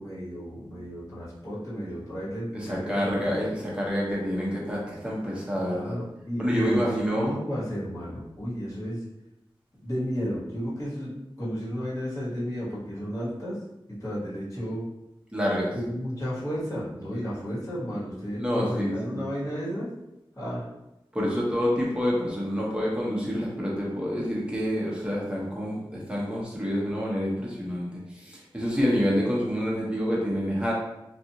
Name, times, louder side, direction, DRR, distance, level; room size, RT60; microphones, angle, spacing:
voice 1, 0.0-3.4 5.6-6.9 7.1-9.0 9.8-11.1 11.4-13.6 13.9-14.8 15.8-19.9 20.4-20.6, equal, 35° left, -9 dB, 1.5 m, -33 dB
voice 2, 2.5-6.0 6.4-7.3 15.3-15.7 17.1-17.2 18.4-19.2 21.1-27.9 28.1-30.7, equal, 10° right, -5 dB, 1.0 m, -27 dB
2.5 x 2.5 x 2.9 m, 0.92 s
wide cardioid pair, 45°, 9 cm